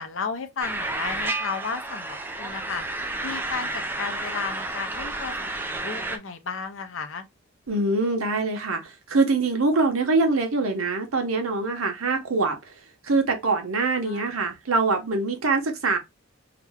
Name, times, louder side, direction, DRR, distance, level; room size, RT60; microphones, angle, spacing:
voice 1, 0.0-2.8 3.2-7.3 14.0-14.3, left 5 dB, 65° left, 0.6 m, -34 dB
sound 1, 0.6-6.2, right 2 dB, 10° right, 0.3 m, -31 dB
voice 2, 7.7-12.7 13.0-16.0, right 3 dB, 85° right, 1.0 m, -24 dB
2.9 x 2.2 x 3.4 m
head